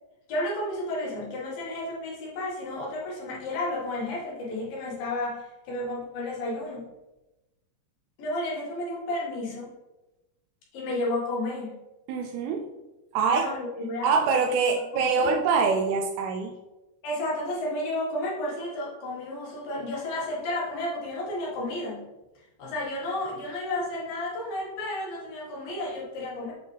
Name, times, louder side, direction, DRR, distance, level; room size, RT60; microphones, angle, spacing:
voice 1, 0.3-6.9 8.2-9.7 10.7-11.8 13.3-14.8 15.1-15.4 17.0-22.1 22.6-26.5, left 1 dB, 65° left, -5 dB, 3.2 m, -32 dB
voice 2, 12.1-12.7 13.1-13.5 14.0-16.5, right 5 dB, 85° right, 3 dB, 2.5 m, -24 dB
7.8 x 4.6 x 3.3 m, 1.0 s
omnidirectional pair, 4.5 m